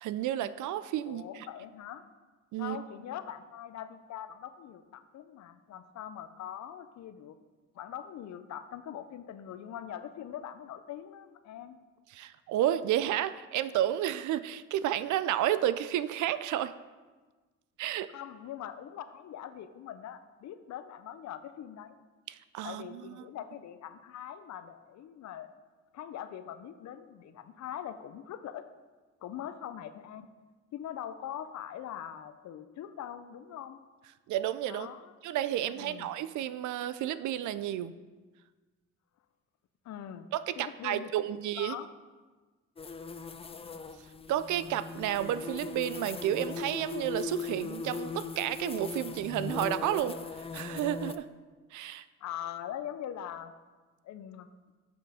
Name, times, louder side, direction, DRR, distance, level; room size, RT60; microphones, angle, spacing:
voice 1, 0.0-1.5 2.5-2.8 12.1-16.7 17.8-18.1 22.3-23.0 34.3-34.9 35.2-37.9 40.3-41.8 44.3-50.2 50.5-51.3 51.7-52.0, right 12 dB, 75° right, 14 dB, 0.4 m, -31 dB
voice 2, 1.1-2.1 2.6-7.4 7.7-11.8 18.1-22.0 22.6-25.5 25.9-28.7 29.2-30.3 30.7-33.8 34.7-35.1 35.7-36.1 39.8-40.3 40.6-41.3 41.6-41.9 52.2-53.5 54.0-54.5, left 10 dB, 65° left, 11 dB, 0.6 m, -42 dB
sound 1, 42.8-51.2, left 5 dB, 20° left, 0.4 m, -39 dB
7.9 x 5.3 x 4.9 m, 1.3 s
cardioid pair, 90°, 30 cm